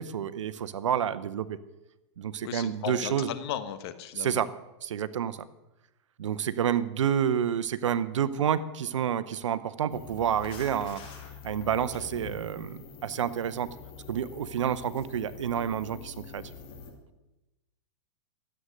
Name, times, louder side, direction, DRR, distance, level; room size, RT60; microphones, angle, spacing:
voice 1, 0.0-1.6 2.2-3.3 4.1-4.5 4.8-5.4 6.2-11.0 11.4-13.7 14.1-16.4, right 9 dB, 85° right, 15 dB, 0.8 m, -29 dB
voice 2, 2.4-4.4, left 10 dB, 60° left, 11 dB, 1.1 m, -36 dB
sound 1, 9.9-16.9, left 6 dB, 35° left, 2.3 m, -45 dB
13.0 x 8.0 x 6.3 m, 0.98 s
hypercardioid pair, 125°, 15 cm